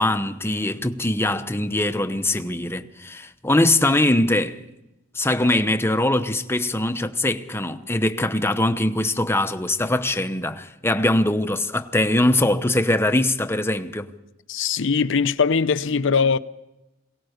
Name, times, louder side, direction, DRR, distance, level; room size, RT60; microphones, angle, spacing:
voice 1, 0.0-4.6 5.1-14.1, left 1 dB, 10° left, 0.9 m, -22 dB
voice 2, 14.5-16.4, left 5 dB, 65° left, 0.7 m, -21 dB
22.5 x 18.0 x 6.6 m
head